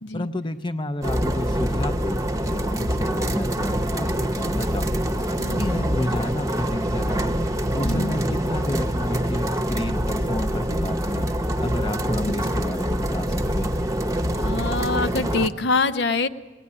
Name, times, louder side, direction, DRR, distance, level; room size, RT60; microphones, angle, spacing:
voice 1, 0.1-2.2 2.5-5.0 5.6-7.4 7.7-11.3 11.6-13.8, left 1 dB, 25° left, 10 dB, 0.7 m, -31 dB
sound 1, 1.0-15.5, equal, 15° right, 0.9 m, -25 dB
voice 2, 5.4-5.7 7.8-8.2 12.3-12.4 14.4-16.3, left 3 dB, 65° left, 11 dB, 0.7 m, -25 dB
22.0 x 17.5 x 9.9 m, 1.3 s
head